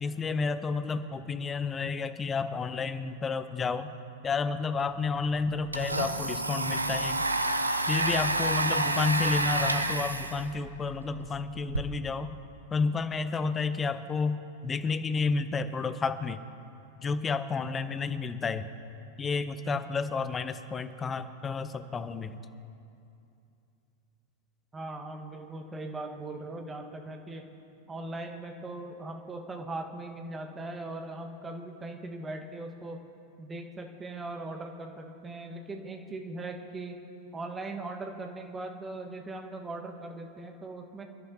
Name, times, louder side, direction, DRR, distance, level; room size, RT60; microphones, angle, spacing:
voice 1, 0.0-3.9 4.2-7.2 7.9-12.3 12.7-14.4 14.6-16.4 17.0-18.7 19.2-22.4, left 4 dB, 20° left, 12 dB, 0.7 m, -31 dB
Domestic sounds home sounds, 4.8-4.9 5.2-11.8, right 2 dB, 85° right, 0.7 m, -30 dB
voice 2, 24.7-27.4 27.9-33.0 33.4-37.0 37.3-41.0, right 2 dB, 15° right, 3 dB, 1.3 m, -39 dB
27.5 x 11.5 x 2.8 m, 2.6 s
figure-of-eight pair, 90°, 0 cm